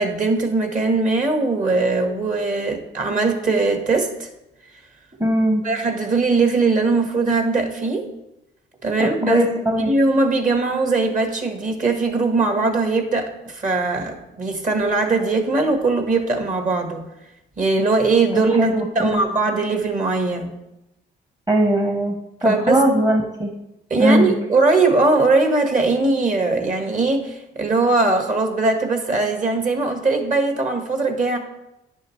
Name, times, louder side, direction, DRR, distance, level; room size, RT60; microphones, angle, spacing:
voice 1, 0.0-4.3 5.6-8.1 8.8-9.5 9.8-17.0 17.6-20.5 22.4-22.8 23.9-31.4, right 3 dB, 40° right, 5 dB, 1.5 m, -20 dB
voice 2, 5.2-5.6 9.0-9.9 18.6-19.2 21.5-22.2 22.4-23.5 24.0-24.3, right 1 dB, 20° right, 2 dB, 1.1 m, -19 dB
10.5 x 6.4 x 3.2 m, 0.90 s
cardioid pair, 90°, 20 cm